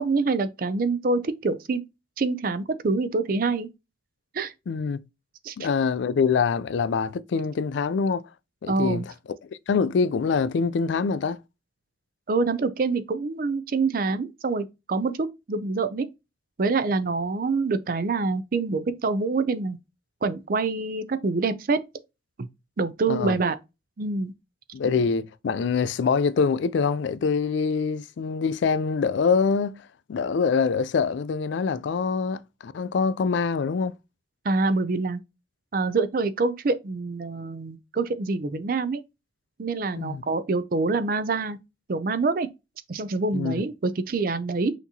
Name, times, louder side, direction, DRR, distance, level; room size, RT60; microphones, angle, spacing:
voice 1, 0.0-1.8 2.2-3.7 4.3-4.5 5.4-5.6 8.7-9.1 12.3-16.1 16.6-19.8 20.2-21.8 22.4-22.5 22.8-23.6 24.0-24.3 34.4-35.2 35.7-39.0 39.6-41.6 41.9-42.5 42.9-44.7, right 3 dB, 50° right, 0.4 m, -26 dB
voice 2, 4.7-5.0 5.6-8.3 8.6-9.0 9.4-11.4 23.1-23.4 24.7-33.9 40.0-40.2 43.3-43.6, left 5 dB, 70° left, 0.3 m, -25 dB
5.8 x 2.9 x 2.7 m
head